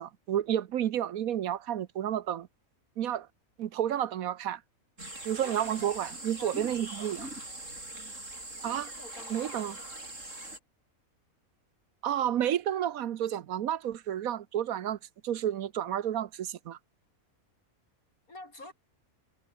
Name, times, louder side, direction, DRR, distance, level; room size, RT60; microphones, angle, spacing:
voice 1, 0.0-2.5 3.0-3.3 3.6-4.6 5.2-7.3 8.6-8.8 9.3-9.8 12.0-15.0 15.2-16.8, right 10 dB, 80° right, 1.3 m, -31 dB
sound 1, 5.0-10.6, right 2 dB, 60° right, 7.7 m, -42 dB
voice 2, 5.4-6.6 8.6-9.5 18.3-18.7, left 2 dB, 80° left, 6.9 m, -48 dB
omnidirectional pair, 1.5 m